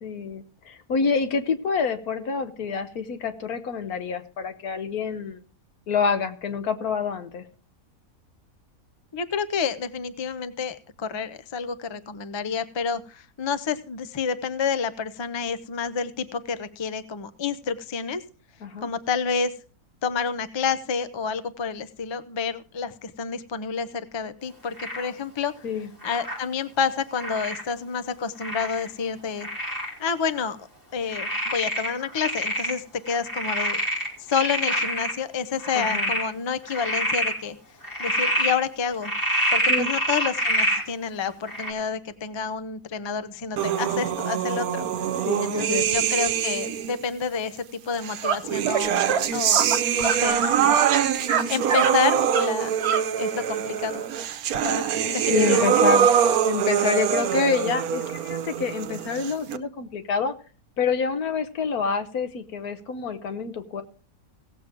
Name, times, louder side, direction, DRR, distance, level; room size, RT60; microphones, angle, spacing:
voice 1, 0.0-5.4 5.9-7.4 18.6-18.9 25.6-25.9 35.7-36.1 39.7-39.9 45.2-45.9 55.3-56.1 56.4-60.3 60.8-63.8, left 5 dB, 90° left, 9 dB, 1.5 m, -27 dB
voice 2, 9.1-18.2 18.8-19.5 20.0-25.5 26.0-29.5 30.0-30.6 30.9-33.8 34.3-37.6 38.0-39.1 39.5-44.9 45.4-49.0 49.3-49.7 50.0-50.8 51.5-52.8 53.2-54.1 54.6-55.7, left 6 dB, 40° left, 12 dB, 0.3 m, -29 dB
Frog, 24.8-25.1 26.0-26.4 27.2-27.6 28.4-28.9 29.4-29.9 30.4-30.5 31.1-32.7 33.1-35.1 35.6-36.2 36.7-37.3 37.8-38.5 39.0-40.8 41.5-41.7, equal, 15° left, 2.6 m, -26 dB
sound 1, 43.6-47.0 48.0-59.6, right 9 dB, 80° right, 1.2 m, -24 dB
sound 2, 48.2-48.4 48.6-48.8 49.1-49.2 49.5-50.5 50.8-51.4 51.7-51.9 52.3-52.5 52.8-53.0, right 6 dB, 55° right, 1.0 m, -24 dB
17.0 x 7.5 x 3.6 m, 0.39 s
omnidirectional pair, 1.5 m